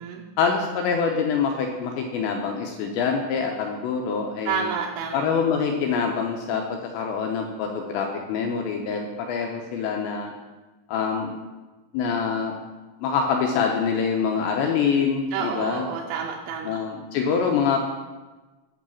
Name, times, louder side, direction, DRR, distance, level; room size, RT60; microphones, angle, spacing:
voice 1, 0.4-4.7 5.1-10.3 10.9-11.3 11.9-12.6 13.0-15.9 16.6-17.8, left 6 dB, 80° left, 2 dB, 2.7 m, -25 dB
voice 2, 4.5-5.2 15.3-16.8, right 6 dB, 85° right, 0 dB, 3.2 m, -29 dB
9.0 x 5.2 x 7.1 m, 1.2 s
omnidirectional pair, 5.7 m